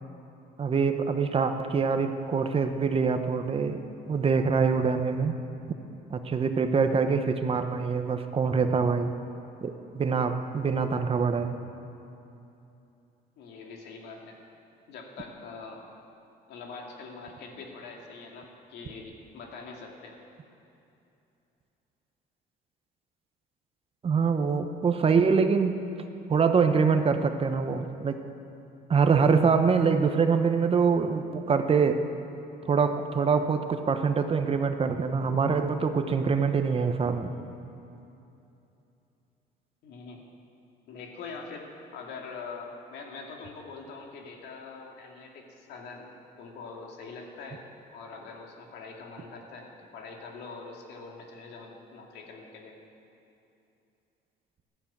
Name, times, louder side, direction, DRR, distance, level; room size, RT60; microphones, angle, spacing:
voice 1, 0.6-3.8 4.1-5.4 6.1-9.1 9.6-11.6 24.0-25.7 26.3-28.2 28.9-32.0 32.7-37.3, right 5 dB, 35° right, 7 dB, 1.0 m, -24 dB
voice 2, 13.4-14.4 14.9-15.8 16.5-20.1 39.8-40.2 40.9-47.6 47.9-52.7, left 4 dB, 80° left, 1 dB, 2.5 m, -43 dB
13.0 x 12.5 x 8.7 m, 2.8 s
cardioid pair, 110°, 17 cm